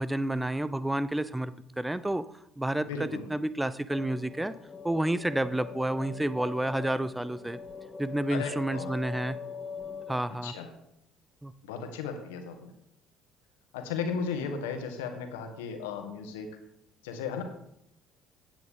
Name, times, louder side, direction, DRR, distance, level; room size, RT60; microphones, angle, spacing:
voice 1, 0.0-2.2 2.6-4.5 4.8-7.6 8.0-9.4 10.1-10.5 11.4-11.5, right 1 dB, 10° right, 15 dB, 0.7 m, -30 dB
voice 2, 2.8-3.3 8.3-8.9 10.4-10.7 11.7-12.6 13.7-16.5 17.0-17.4, left 5 dB, 70° left, 5 dB, 1.8 m, -35 dB
sound 1, 3.9-10.2, left 6 dB, 20° left, 1.0 m, -42 dB
16.5 x 9.2 x 3.8 m, 0.78 s
figure-of-eight pair, 50°, 0 cm